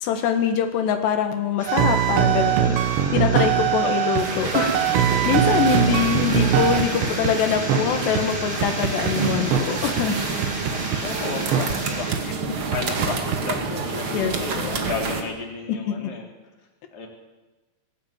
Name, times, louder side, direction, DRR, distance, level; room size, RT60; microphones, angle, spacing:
voice 1, 0.0-10.6 12.5-12.6 14.1-14.8 15.7-16.1, left 7 dB, 80° left, 6 dB, 3.6 m, -24 dB
sound 1, 1.6-12.1, right 1 dB, 15° right, 3.4 m, -33 dB
sound 2, 1.7-4.3 4.5-7.3 7.7-7.8 8.1-8.2 8.6-9.1 9.5-9.7 10.0-10.1 10.4-11.0 11.5-11.7 12.1-12.2 12.7-13.4, right 10 dB, 90° right, 3.6 m, -21 dB
sound 3, 4.2-15.2, right 4 dB, 45° right, 1.9 m, -29 dB
voice 2, 11.0-12.3 12.6-16.3 16.9-17.1, left 4 dB, 25° left, 1 dB, 3.5 m, -33 dB
20.0 x 14.5 x 9.0 m, 1.2 s
omnidirectional pair, 4.9 m